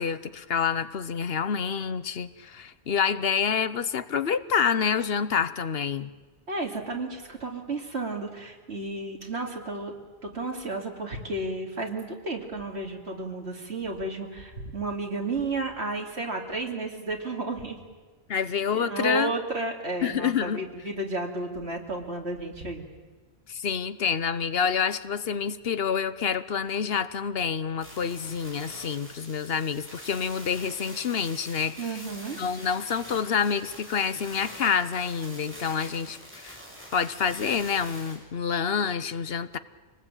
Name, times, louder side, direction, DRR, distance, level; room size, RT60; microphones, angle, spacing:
voice 1, 0.0-6.1 18.3-19.3 20.0-20.6 23.5-32.0 32.4-36.6 36.9-39.6, left 6 dB, 65° left, 14 dB, 1.1 m, -27 dB
voice 2, 6.5-9.9 10.2-17.8 18.7-22.9 31.8-32.4, right 2 dB, 85° right, 2 dB, 3.0 m, -32 dB
sound 1, 27.8-38.2, equal, 10° right, 7.2 m, -45 dB
26.5 x 20.0 x 9.0 m, 1.3 s
omnidirectional pair, 1.1 m